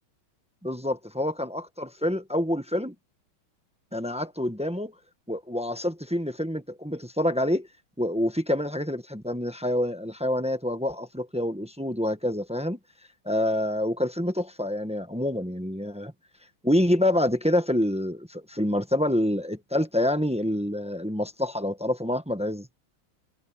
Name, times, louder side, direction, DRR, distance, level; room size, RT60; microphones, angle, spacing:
voice 1, 0.6-2.9 3.9-4.9 5.3-7.7 8.0-12.8 13.2-16.1 16.6-22.7, left 1 dB, 5° right, 0.7 m, -27 dB
omnidirectional pair, 2.3 m